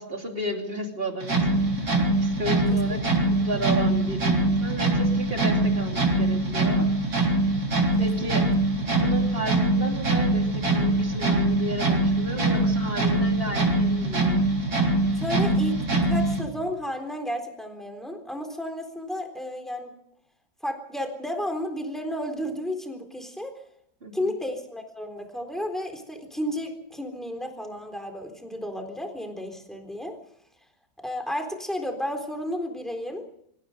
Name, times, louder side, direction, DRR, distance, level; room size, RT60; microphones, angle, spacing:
voice 1, 0.0-6.9 8.0-8.5 8.9-14.4 24.0-24.3, right 1 dB, 30° right, 3 dB, 3.1 m, -33 dB
sound 1, 1.2-16.4, right 2 dB, 50° right, 4.1 m, -23 dB
voice 2, 8.0-8.5 15.1-19.9 20.6-23.5 24.1-30.2 31.0-33.2, left 1 dB, ahead, 4 dB, 3.7 m, -32 dB
26.0 x 15.5 x 6.7 m, 0.73 s
omnidirectional pair, 2.1 m